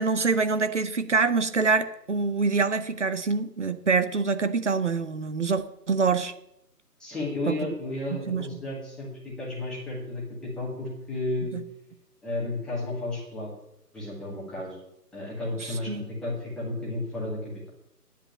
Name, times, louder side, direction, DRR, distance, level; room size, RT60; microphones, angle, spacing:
voice 1, 0.0-6.3 7.5-7.6 8.1-8.6 11.5-11.6 15.6-16.0, right 4 dB, 45° right, 11 dB, 0.9 m, -25 dB
voice 2, 7.0-11.5 12.2-13.5 13.9-14.7 15.1-17.7, left 2 dB, ahead, -6 dB, 1.6 m, -33 dB
10.0 x 8.0 x 8.7 m, 0.80 s
figure-of-eight pair, 155°, 48 cm